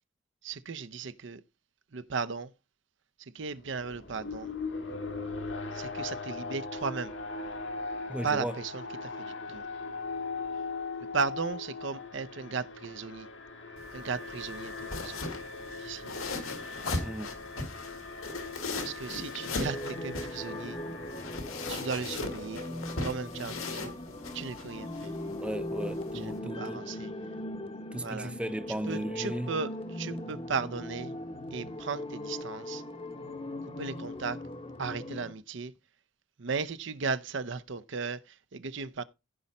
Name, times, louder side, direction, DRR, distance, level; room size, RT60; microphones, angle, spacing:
voice 1, 0.4-1.4 1.9-2.5 3.2-4.5 5.7-7.1 8.2-9.6 11.1-13.3 13.9-15.3 15.8-16.3 18.8-20.8 21.7-22.7 23.0-23.9 24.3-25.1 26.1-27.1 27.9-28.3 28.9-31.1 31.5-32.8 33.8-34.4 34.8-35.7 36.4-39.0, right 5 dB, 60° right, 0.6 m, -36 dB
Alarm, 3.5-21.4, left 3 dB, 60° left, 1.5 m, -40 dB
voice 2, 8.1-8.6 17.0-17.3 25.4-26.9 27.9-29.5, right 1 dB, 5° right, 0.6 m, -36 dB
sound 1, 13.8-26.4, left 3 dB, 90° left, 2.2 m, -39 dB
sound 2, 19.6-35.3, left 1 dB, 25° left, 0.9 m, -39 dB
15.0 x 5.4 x 4.1 m
head